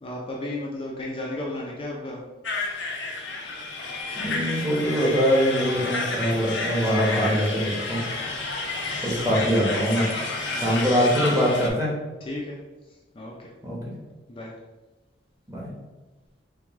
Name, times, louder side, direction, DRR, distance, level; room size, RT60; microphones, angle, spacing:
voice 1, 0.0-2.2 10.5-10.8 12.3-12.6 13.2-13.3 14.3-14.5, left 1 dB, 30° left, -3 dB, 0.5 m, -33 dB
sound 1, 2.4-11.7, left 3 dB, 80° left, 0.7 m, -30 dB
voice 2, 4.2-8.0 9.0-10.1 10.5-11.9 13.6-14.0 15.5-15.7, equal, 20° right, -4 dB, 1.0 m, -23 dB
4.6 x 2.3 x 3.5 m, 1.2 s
head